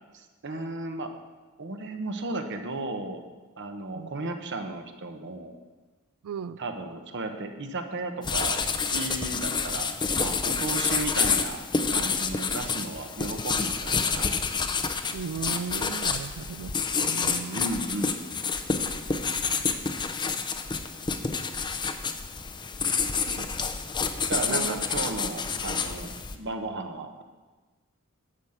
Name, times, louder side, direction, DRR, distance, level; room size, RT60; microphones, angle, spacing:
voice 1, 0.1-1.1 1.6-3.2 3.6-5.6 6.6-9.9 10.2-11.6 11.9-14.3 17.5-18.2 24.3-27.2, right 2 dB, 55° right, 6 dB, 1.1 m, -34 dB
voice 2, 6.2-6.6 15.1-16.7 17.0-17.6 19.5-19.6 23.4-23.5 24.5-24.8, right 6 dB, 75° right, 15 dB, 0.4 m, -36 dB
sound 1, 8.2-26.4, left 5 dB, 20° left, 0.5 m, -28 dB
11.5 x 5.8 x 7.9 m, 1.3 s
head